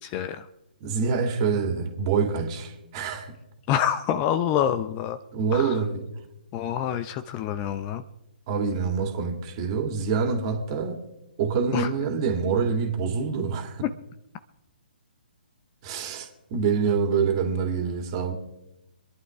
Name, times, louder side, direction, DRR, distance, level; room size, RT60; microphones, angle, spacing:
voice 1, 0.0-0.5 3.7-5.2 5.5-5.8 6.5-8.0 11.7-11.9, left 10 dB, 25° left, 0.6 m, -27 dB
voice 2, 0.8-3.3 5.3-6.0 8.5-11.0 11.4-13.9 15.8-18.3, right 5 dB, 35° right, 2.4 m, -26 dB
26.0 x 11.0 x 3.6 m
figure-of-eight pair, 130°, 5 cm